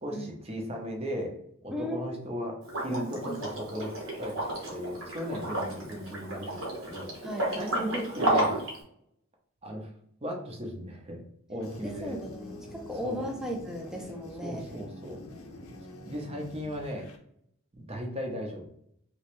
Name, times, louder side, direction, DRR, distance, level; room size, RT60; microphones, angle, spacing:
voice 1, 0.0-1.4 1.6-2.5 2.8-7.1 7.6-8.6 9.6-9.9 10.2-11.2 11.5-12.1 13.0-13.3 14.4-15.3 16.0-17.1 17.7-18.6, equal, 30° right, 0 dB, 0.8 m, -36 dB
voice 2, 1.7-3.4 7.2-7.9 11.8-14.7, equal, ahead, 1 dB, 0.5 m, -37 dB
Liquid, 2.6-8.8, right 1 dB, 60° right, 1.2 m, -32 dB
sound 1, 11.6-17.2, left 1 dB, 80° left, 0.7 m, -45 dB
3.2 x 3.1 x 3.0 m, 0.69 s
head